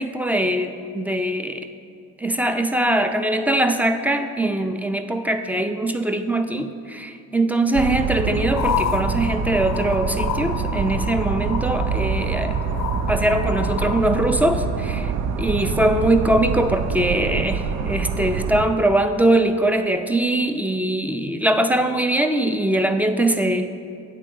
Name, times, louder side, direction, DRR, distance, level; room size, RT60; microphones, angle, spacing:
voice 1, 0.0-1.7 2.2-12.6 13.1-15.1 15.4-23.7, right 1 dB, 5° right, 7 dB, 0.3 m, -22 dB
XY City hum Night River ambience, 7.7-18.6, right 6 dB, 70° right, 0.5 m, -25 dB
sound 1, 8.5-14.0, left 8 dB, 65° left, 0.5 m, -30 dB
8.4 x 3.7 x 5.3 m, 2.4 s
cardioid pair, 90°, 30 cm